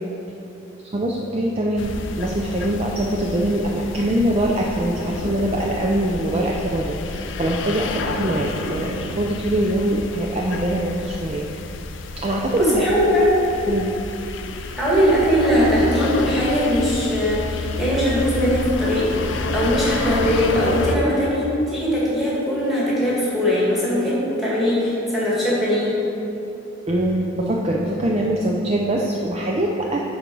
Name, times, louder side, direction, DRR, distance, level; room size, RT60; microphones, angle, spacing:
voice 1, 0.8-11.5 12.2-12.9 13.7-13.9 26.9-30.0, right 1 dB, 30° right, -1 dB, 0.4 m, -23 dB
sound 1, 1.8-21.0, left 3 dB, 60° left, 0.4 m, -29 dB
voice 2, 12.5-13.4 14.8-25.9, equal, ahead, -7 dB, 1.8 m, -20 dB
10.0 x 3.9 x 4.6 m, 2.8 s
head